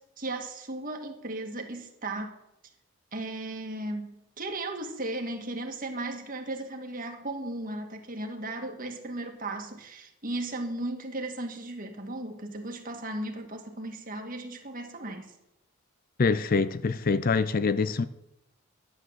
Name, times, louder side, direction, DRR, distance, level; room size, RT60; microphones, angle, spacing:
voice 1, 0.2-2.3 3.1-15.3, right 2 dB, 35° right, 1.9 m, -36 dB
voice 2, 16.2-18.1, left 4 dB, 40° left, 0.4 m, -25 dB
12.0 x 10.5 x 7.3 m
head